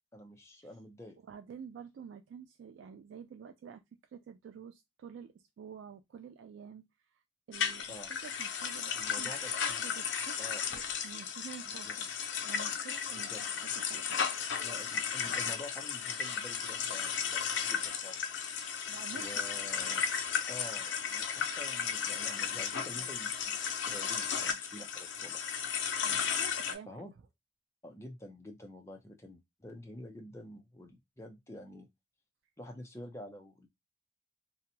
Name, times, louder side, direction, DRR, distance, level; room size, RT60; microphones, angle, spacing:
voice 1, 0.1-1.2 7.9-8.1 9.0-9.8 10.4-10.8 11.7-12.0 13.1-13.4 13.7-13.8 14.6-18.2 19.1-20.0 20.5-25.4 26.9-27.1 27.8-31.9 32.6-33.7, left 1 dB, 15° left, 0.5 m, -48 dB
voice 2, 1.3-3.8 4.1-7.2 7.5-9.3 9.8-10.4 10.7-12.1 12.4-14.2 18.9-19.4 26.0-27.1, right 7 dB, 85° right, 0.3 m, -49 dB
sound 1, 7.5-26.7, left 7 dB, 75° left, 0.5 m, -35 dB
2.8 x 2.1 x 2.7 m
head